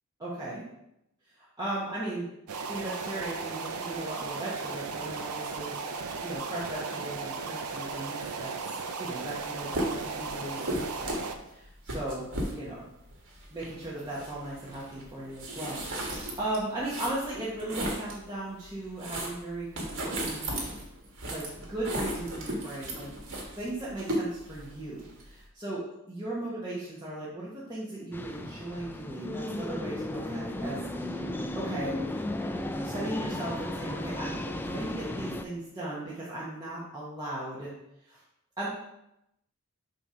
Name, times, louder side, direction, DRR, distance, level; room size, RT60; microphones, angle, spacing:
voice 1, 0.2-0.6 1.6-2.3 2.7-8.5 9.0-12.9 13.5-20.5 21.3-23.1 23.6-31.2 31.5-32.1 32.8-37.7 38.1-38.2 38.6-38.7, right 1 dB, 20° right, -8 dB, 1.2 m, -37 dB
sound 1, 2.5-11.4, right 4 dB, 80° right, 0.6 m, -36 dB
sound 2, 9.3-9.4 9.7-18.2 18.6-25.5, right 1 dB, 60° right, 1.5 m, -36 dB
sound 3, 28.1-35.5, left 1 dB, 10° left, 0.3 m, -35 dB
6.8 x 2.9 x 5.0 m, 0.84 s
head